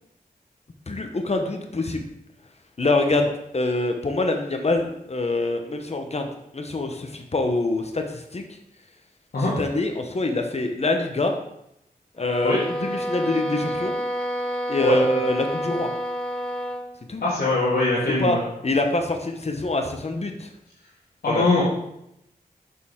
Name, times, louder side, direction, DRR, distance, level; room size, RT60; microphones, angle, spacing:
voice 1, 0.9-2.0 2.8-6.3 6.5-8.4 9.6-11.3 12.2-14.0 14.7-15.9 17.1-17.2 18.2-18.4 18.6-20.5 21.3-21.5, left 2 dB, 45° left, 4 dB, 1.0 m, -25 dB
sound 1, 12.2-16.9, equal, 5° left, 1.2 m, -29 dB
voice 2, 17.2-18.4 21.2-21.6, left 2 dB, 80° left, -8 dB, 1.9 m, -22 dB
6.7 x 6.6 x 3.7 m, 0.80 s
cardioid pair, 60°, 16 cm